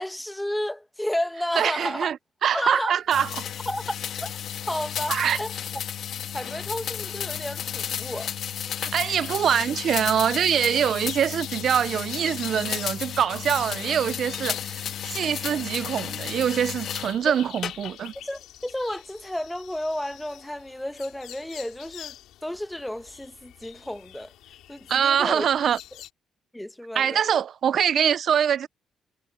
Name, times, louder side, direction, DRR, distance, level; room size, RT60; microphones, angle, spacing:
voice 1, 0.0-2.1 2.5-3.0 3.7-4.3 4.7-5.5 6.3-8.3 18.2-22.1 22.4-24.3 24.7-25.5 26.5-27.2, left 1 dB, 5° left, 1.1 m, -32 dB
voice 2, 1.6-2.2 2.4-3.4 5.1-5.4 8.8-18.1 24.9-25.8 26.9-28.7, right 8 dB, 60° right, 0.4 m, -24 dB
sound 1, 3.1-17.2 17.6-18.2, left 9 dB, 65° left, 1.9 m, -33 dB
sound 2, 9.1-26.1, left 13 dB, 85° left, 4.1 m, -44 dB
cardioid pair, 90°, 0 cm